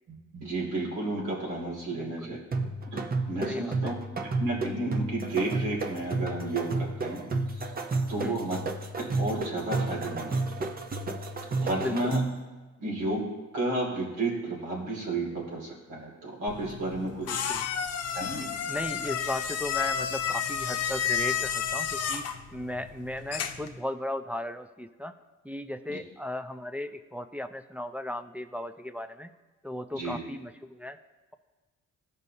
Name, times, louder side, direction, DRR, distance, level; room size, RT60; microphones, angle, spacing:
voice 1, 0.1-4.0 4.4-7.3 7.6-7.7 8.1-8.6 9.0-10.7 11.6-12.2 12.8-13.3 13.5-17.4 18.1-18.5 25.9-26.0 29.9-30.2, right 2 dB, 85° right, -2 dB, 2.4 m, -32 dB
voice 2, 2.0-2.4 3.5-3.9 8.2-8.4 11.8-12.2 17.2-17.6 18.7-25.1 25.4-29.3 29.6-31.0, left 1 dB, 5° right, 7 dB, 0.4 m, -36 dB
sound 1, 2.5-12.4, right 3 dB, 30° right, 0.8 m, -32 dB
sound 2, 16.5-23.8, left 7 dB, 55° left, 0.7 m, -31 dB
14.5 x 5.4 x 2.8 m, 1.2 s
cardioid pair, 90°, 30 cm